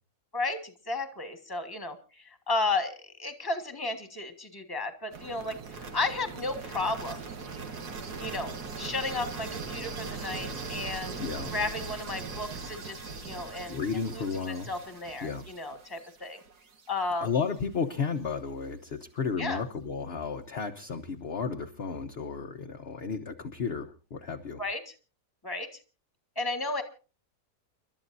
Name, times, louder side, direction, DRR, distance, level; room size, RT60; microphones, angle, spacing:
voice 1, 0.3-7.2 8.2-11.1 11.5-13.8 14.1-16.4 16.9-17.3 19.4-19.6 24.6-24.9 25.4-25.7 26.3-26.8, left 3 dB, 15° left, 7 dB, 1.6 m, -33 dB
sound 1, 5.1-17.0, right 4 dB, 75° right, 2.2 m, -40 dB
voice 2, 11.2-11.5 13.7-14.7 15.2-15.5 17.2-24.6, left 5 dB, 45° left, 5 dB, 1.0 m, -33 dB
29.5 x 12.5 x 2.7 m, 0.34 s
omnidirectional pair, 1.7 m